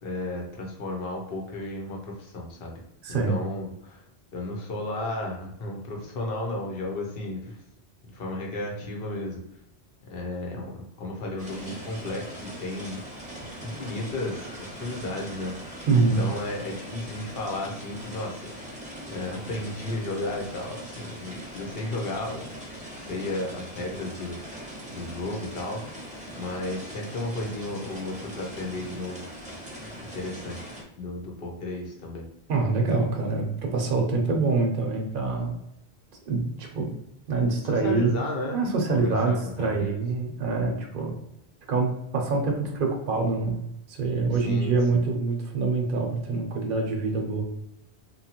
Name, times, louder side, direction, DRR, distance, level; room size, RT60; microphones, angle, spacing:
voice 1, 0.0-2.8 3.1-4.0 4.3-7.6 8.1-9.4 10.1-13.0 13.4-15.6 16.2-22.5 23.0-25.8 26.3-29.2 29.9-32.2 37.7-38.6 38.9-40.0 44.4-45.1, left 2 dB, 65° left, 0 dB, 0.9 m, -34 dB
voice 2, 3.0-3.4 15.9-16.2 32.5-35.6 36.3-36.9 37.3-38.2 38.5-41.2 41.7-47.4, right 3 dB, 60° right, 1 dB, 0.7 m, -25 dB
sound 1, 11.4-30.8, right 1 dB, 10° right, 0.5 m, -41 dB
2.8 x 2.3 x 2.8 m, 0.82 s
omnidirectional pair, 1.1 m